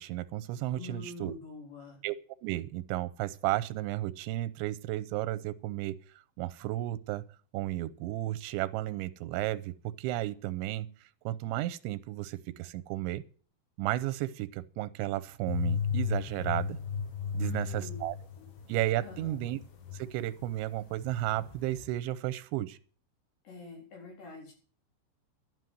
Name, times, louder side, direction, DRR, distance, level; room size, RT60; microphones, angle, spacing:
voice 1, 0.0-1.3 2.0-2.2 2.4-6.0 6.4-7.2 7.5-9.7 10.0-10.9 11.3-13.2 13.8-16.8 17.3-18.2 18.7-19.6 19.9-22.8, right 15 dB, 90° right, 3.1 m, -33 dB
voice 2, 0.8-2.0 17.4-18.1 18.4-18.5 19.0-19.4 23.4-24.5, left 4 dB, 50° left, 5.2 m, -45 dB
sound 1, 15.5-20.5 20.7-21.9, left 7 dB, 70° left, 4.2 m, -35 dB
12.0 x 9.3 x 7.7 m
omnidirectional pair, 5.2 m